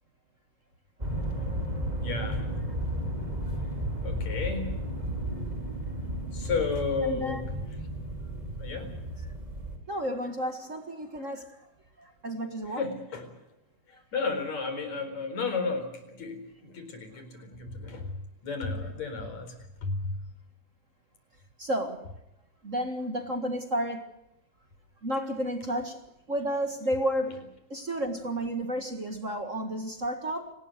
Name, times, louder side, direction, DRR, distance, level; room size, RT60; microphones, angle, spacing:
sound 1, 1.0-9.8, equal, 10° right, 4.0 m, -33 dB
voice 1, 2.0-2.5 4.0-4.7 6.3-7.5 8.6-8.9 12.7-13.3 13.9-19.6 19.8-20.2, left 4 dB, 55° left, 8 dB, 5.6 m, -33 dB
voice 2, 7.0-7.4 9.9-11.7 12.0-12.9 21.6-22.0 22.6-24.1 25.0-30.5, equal, 30° right, 7 dB, 1.4 m, -32 dB
29.5 x 20.0 x 6.7 m, 0.89 s
omnidirectional pair, 3.9 m